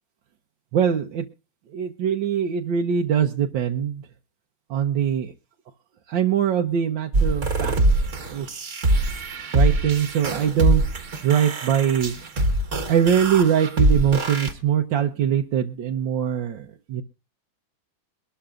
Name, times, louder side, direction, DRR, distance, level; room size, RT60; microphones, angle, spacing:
voice 1, 0.7-1.2 1.7-4.0 4.7-5.3 6.1-7.7 8.2-8.8 9.5-10.8 11.2-12.1 12.9-17.0, right 8 dB, 70° right, 2 dB, 1.6 m, -22 dB
sound 1, 7.1-14.5, right 2 dB, 40° right, 1.7 m, -23 dB
23.0 x 12.5 x 2.5 m, 0.30 s
omnidirectional pair, 2.2 m